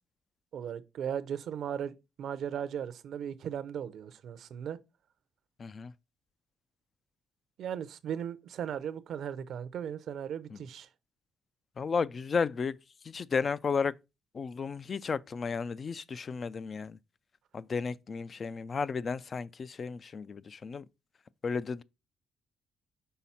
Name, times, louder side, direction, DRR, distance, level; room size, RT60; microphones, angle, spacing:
voice 1, 0.5-4.8 7.6-10.9, right 8 dB, 70° right, 0.6 m, -37 dB
voice 2, 5.6-5.9 10.5-10.6 11.8-12.8 13.0-14.0 14.3-17.0 17.5-20.9 21.4-21.8, left 5 dB, 40° left, 0.3 m, -33 dB
5.6 x 4.1 x 4.2 m
cardioid pair, 90°, 0 cm